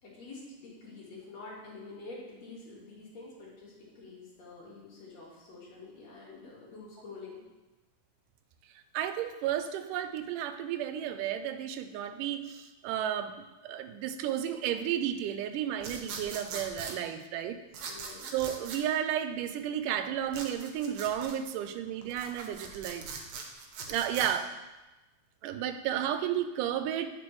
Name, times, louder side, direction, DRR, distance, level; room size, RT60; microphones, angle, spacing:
voice 1, 0.0-7.4 17.9-18.3, left 3 dB, 60° left, -5 dB, 2.7 m, -47 dB
voice 2, 8.9-13.3 13.6-17.6 18.3-23.1 23.9-24.5 25.4-27.1, right 10 dB, 90° right, 9 dB, 2.1 m, -32 dB
sound 1, 15.8-17.0 17.7-18.8 20.3-21.4 22.0-24.3, right 5 dB, 70° right, 1.7 m, -41 dB
10.5 x 4.6 x 3.1 m, 1.1 s
omnidirectional pair, 3.6 m